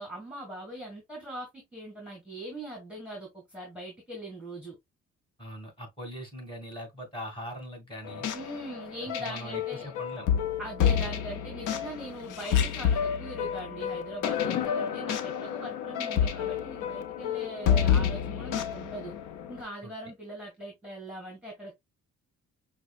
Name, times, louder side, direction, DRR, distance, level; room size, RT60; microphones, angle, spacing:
voice 1, 0.0-4.7 8.3-9.9 10.6-19.1 19.5-21.7, equal, 5° right, 1.7 m, -41 dB
voice 2, 5.4-8.3 9.0-10.3 19.8-19.9, equal, 15° left, 2.6 m, -41 dB
sound 1, 8.1-19.6, left 8 dB, 85° left, 0.7 m, -29 dB
6.0 x 2.3 x 2.4 m
cardioid pair, 90°, 30 cm